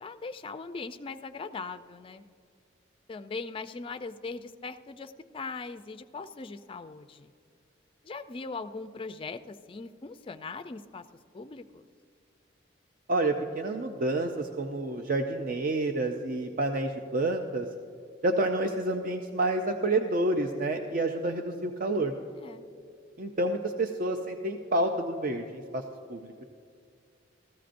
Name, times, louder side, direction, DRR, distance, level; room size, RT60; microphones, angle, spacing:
voice 1, 0.0-2.2 3.1-7.3 8.0-11.0 11.3-11.8 22.3-22.7, left 4 dB, 25° left, 9 dB, 0.3 m, -40 dB
voice 2, 13.1-17.7 18.2-22.1 23.2-25.8 26.1-26.4, right 2 dB, 45° right, 5 dB, 0.5 m, -29 dB
16.0 x 14.0 x 2.6 m, 2.3 s
head